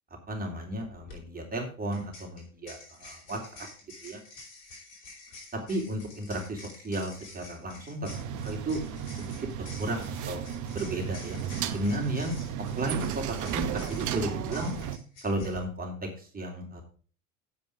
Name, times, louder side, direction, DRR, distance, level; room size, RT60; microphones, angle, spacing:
voice 1, 0.3-3.7 4.0-4.2 5.7-8.1 8.4-8.8 9.2-9.3 9.8-10.4 10.7-11.4 11.7-12.4 12.8-13.2 13.5-14.7 15.2-15.9 16.3-16.8, right 1 dB, 20° right, 2 dB, 3.5 m, -33 dB
sound 1, 0.9-1.2 1.9-15.6, left 3 dB, 75° left, 5.2 m, -49 dB
sound 2, 8.1-15.0, right 9 dB, 45° right, 1.2 m, -34 dB
9.2 x 7.8 x 4.8 m, 0.39 s
hypercardioid pair, 80°, 40 cm